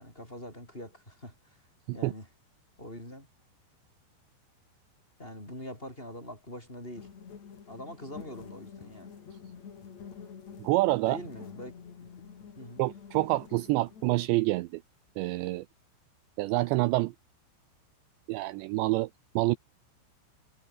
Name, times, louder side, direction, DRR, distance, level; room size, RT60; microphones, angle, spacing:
voice 1, 0.0-1.6 1.9-2.3 2.8-3.3 5.2-7.1 7.7-9.1 11.0-12.1 12.6-12.8, left 1 dB, 10° left, 7.6 m, -44 dB
sound 1, 7.0-14.4, left 7 dB, 40° left, 3.4 m, -48 dB
voice 2, 10.6-11.2 12.8-14.8 15.2-15.7 16.4-17.1 18.3-19.1 19.4-19.6, right 19 dB, 85° right, 2.6 m, -27 dB
omnidirectional pair, 5.8 m